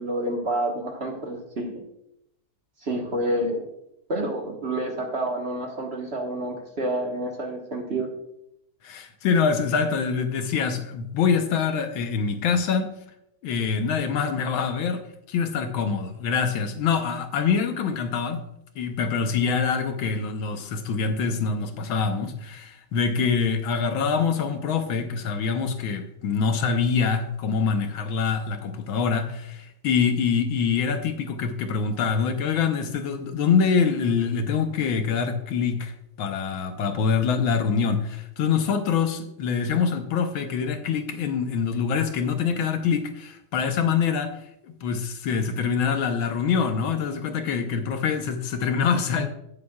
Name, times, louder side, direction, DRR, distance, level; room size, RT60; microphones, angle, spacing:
voice 1, 0.0-1.8 2.8-3.6 4.1-8.1, right 1 dB, 35° right, 1.3 m, -28 dB
voice 2, 8.8-12.9 13.4-15.0 15.3-18.4 18.8-44.4 44.6-49.3, left 6 dB, 80° left, 1.7 m, -25 dB
16.5 x 7.6 x 2.4 m
omnidirectional pair, 2.2 m